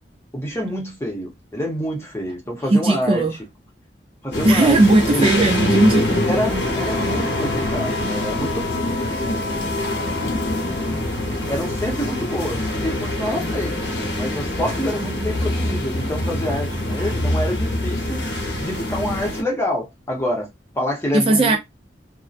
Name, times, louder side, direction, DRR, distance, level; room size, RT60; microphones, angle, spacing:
voice 1, 0.3-3.2 4.2-5.3 6.3-8.7 11.5-13.8 14.2-18.2 18.6-20.5 20.8-21.6, equal, 15° left, 0.8 m, -27 dB
voice 2, 2.7-3.3 4.4-6.3 21.1-21.6, right 2 dB, 30° right, 0.3 m, -16 dB
sound 1, 4.3-19.4, left 1 dB, 90° left, 0.9 m, -24 dB
Wind instrument woodwind instrument, 6.6-11.1, left 5 dB, 70° left, 0.6 m, -32 dB
2.6 x 2.1 x 2.4 m
head